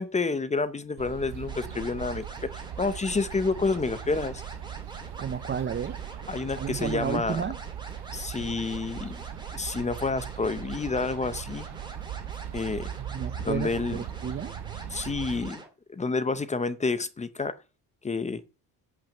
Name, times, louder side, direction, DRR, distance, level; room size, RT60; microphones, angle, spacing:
voice 1, 0.0-2.2 2.5-4.4 6.3-7.4 8.1-9.2 9.5-11.7 12.5-12.9 13.4-14.0 14.9-15.6 15.9-17.5 18.0-18.4, left 4 dB, 15° left, 0.7 m, -29 dB
sound 1, 1.0-15.5, right 11 dB, 75° right, 0.9 m, -39 dB
sound 2, 1.5-15.7, right 2 dB, 10° right, 2.4 m, -45 dB
voice 2, 5.2-6.0 6.5-7.6 13.0-14.5, right 8 dB, 30° right, 0.5 m, -32 dB
11.0 x 6.1 x 7.4 m
cardioid pair, 160°, 40 cm